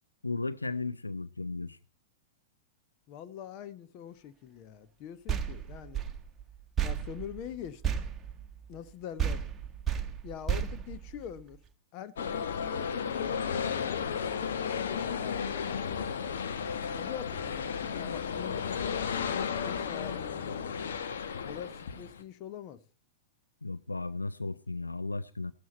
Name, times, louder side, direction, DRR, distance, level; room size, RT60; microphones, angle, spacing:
voice 1, 0.2-1.8 23.6-25.5, left 3 dB, 85° left, 0.6 m, -35 dB
voice 2, 3.1-6.0 6.8-8.0 8.7-9.4 10.2-11.6 11.9-16.2 16.9-20.8 21.4-22.8, left 10 dB, 40° left, 1.2 m, -44 dB
sound 1, 5.3-8.9 9.2-11.7, right 8 dB, 20° right, 1.4 m, -34 dB
sound 2, 12.2-22.2, left 7 dB, 65° left, 1.4 m, -33 dB
16.0 x 12.5 x 4.2 m
figure-of-eight pair, 100°, 0 cm